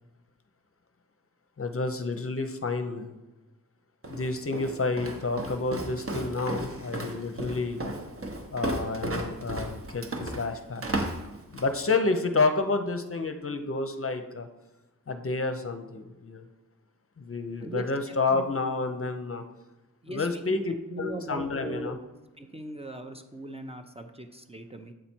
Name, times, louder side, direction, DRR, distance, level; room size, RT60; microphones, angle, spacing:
voice 1, 1.6-3.1 4.1-7.8 8.5-11.1 11.5-14.5 15.1-16.5 17.2-19.4 20.1-22.0, left 3 dB, 40° left, 7 dB, 0.7 m, -29 dB
Walk footsteps, 4.0-11.8, right 2 dB, 40° right, 1.0 m, -34 dB
voice 2, 17.6-18.4 20.0-22.0 22.4-24.9, right 1 dB, 20° right, 5 dB, 0.6 m, -39 dB
7.7 x 4.2 x 4.4 m, 1.1 s
wide cardioid pair, 65°, 33 cm